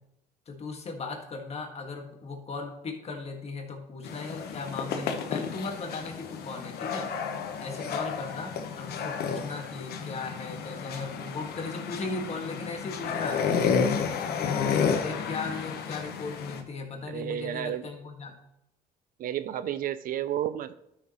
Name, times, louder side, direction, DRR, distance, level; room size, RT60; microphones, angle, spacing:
voice 1, 0.5-7.1 7.6-13.4 14.4-18.4, left 4 dB, 40° left, 2 dB, 1.7 m, -37 dB
sound 1, 4.0-16.6, left 6 dB, 70° left, 1.1 m, -31 dB
voice 2, 17.1-17.9 19.2-20.7, right 11 dB, 55° right, 14 dB, 0.5 m, -31 dB
12.5 x 6.4 x 3.0 m, 0.84 s
cardioid pair, 110°, 17 cm